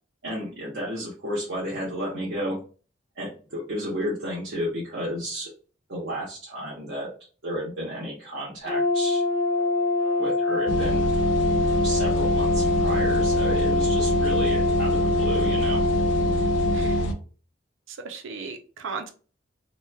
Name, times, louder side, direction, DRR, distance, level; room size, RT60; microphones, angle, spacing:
voice 1, 0.2-2.6 3.1-5.5 5.9-7.1 7.4-9.2 10.2-11.1 11.8-15.8, equal, 60° right, -6 dB, 0.8 m, -32 dB
Brass instrument, 8.6-17.1, left 3 dB, 25° left, 0.7 m, -24 dB
sound 1, 10.7-17.1, right 2 dB, 75° left, 0.4 m, -27 dB
voice 2, 16.7-17.1 17.9-19.1, right 5 dB, 85° right, 6 dB, 0.5 m, -36 dB
2.9 x 2.1 x 2.2 m, 0.38 s
head